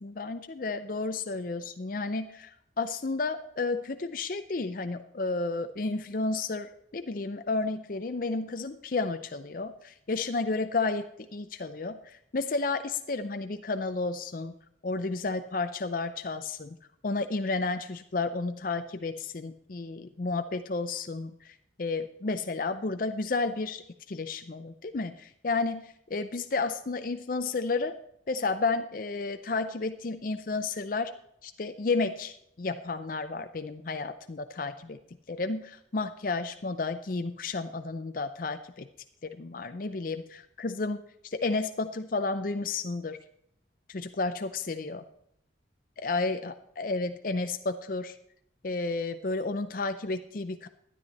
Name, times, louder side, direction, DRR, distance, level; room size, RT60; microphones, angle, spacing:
voice 1, 0.0-14.5 14.8-16.8 17.0-28.0 28.3-31.1 31.4-35.0 35.3-38.9 39.3-43.2 43.9-45.0 46.0-48.2 48.6-50.7, left 3 dB, 45° left, 8 dB, 0.5 m, -32 dB
12.5 x 10.0 x 4.2 m, 0.73 s
head